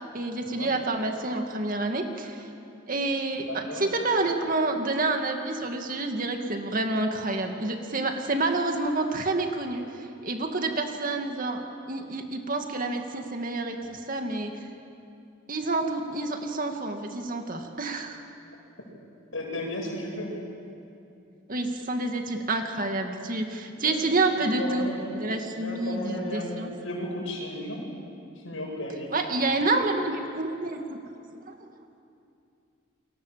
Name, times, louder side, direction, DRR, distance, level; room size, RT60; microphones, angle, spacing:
voice 1, 0.1-2.5 2.9-14.5 15.5-18.2 21.5-24.9 25.1-26.7 29.1-31.0 31.5-31.6, right 2 dB, 40° right, 4 dB, 2.2 m, -28 dB
voice 2, 3.5-3.9 19.3-20.4 23.7-24.0 24.4-25.1 25.5-27.8 28.4-29.5, left 1 dB, 75° left, 0 dB, 7.3 m, -35 dB
29.5 x 23.5 x 7.6 m, 2.6 s
head